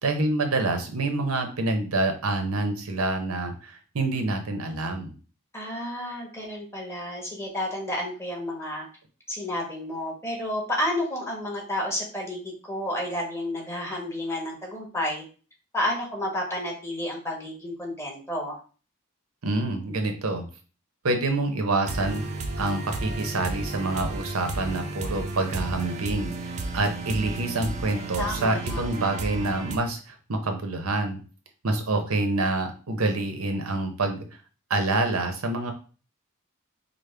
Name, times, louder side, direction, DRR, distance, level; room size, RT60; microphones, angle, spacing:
voice 1, 0.0-5.1 19.4-20.5 21.0-22.2 22.6-31.2 31.6-34.2 34.7-35.7, right 2 dB, 90° right, 5 dB, 0.8 m, -27 dB
voice 2, 5.5-8.9 9.3-12.4 12.7-15.2 15.7-18.6 28.2-28.8, left 1 dB, 10° left, -2 dB, 1.2 m, -31 dB
sound 1, 21.8-29.8, right 2 dB, 35° right, 0.5 m, -33 dB
5.1 x 2.1 x 3.3 m, 0.37 s
head